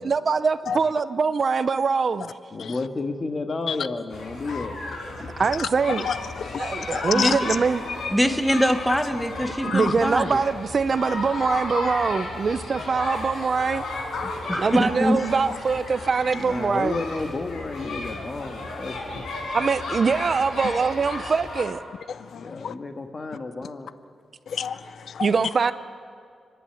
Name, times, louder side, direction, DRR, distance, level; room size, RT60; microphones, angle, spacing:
voice 1, 0.0-2.3 5.4-6.1 6.6-7.8 9.6-13.8 14.5-17.0 19.5-21.8 25.2-25.7, right 5 dB, 40° right, 0.6 m, -23 dB
voice 2, 2.5-4.8 5.1-5.3 16.3-19.2 22.3-23.9, left 3 dB, 35° left, 1.6 m, -32 dB
sound 1, 4.1-21.6, left 2 dB, 85° left, 5.6 m, -34 dB
voice 3, 6.1-6.8 7.2-7.4 9.7-9.9 14.1-14.6 22.1-22.7 24.5-25.3, left 7 dB, 70° left, 0.5 m, -30 dB
voice 4, 8.1-10.3 14.5-15.2, equal, ahead, 1.1 m, -23 dB
29.5 x 11.0 x 9.0 m
wide cardioid pair, 145°, 0 cm